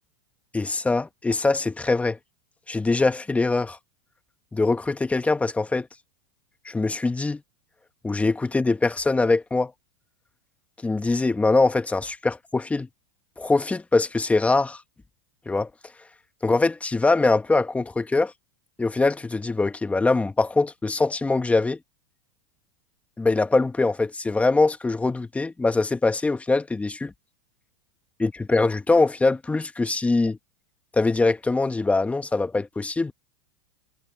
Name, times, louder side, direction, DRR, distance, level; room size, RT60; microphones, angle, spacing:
voice 1, 0.5-2.2 2.7-3.8 4.5-5.9 6.6-7.4 8.0-9.7 10.8-12.9 13.4-14.8 15.4-15.7 16.4-18.3 18.8-21.8 23.2-27.1 28.2-30.4 30.9-33.1, left 3 dB, 10° left, 1.6 m, -23 dB
hypercardioid pair, 115°, 14 cm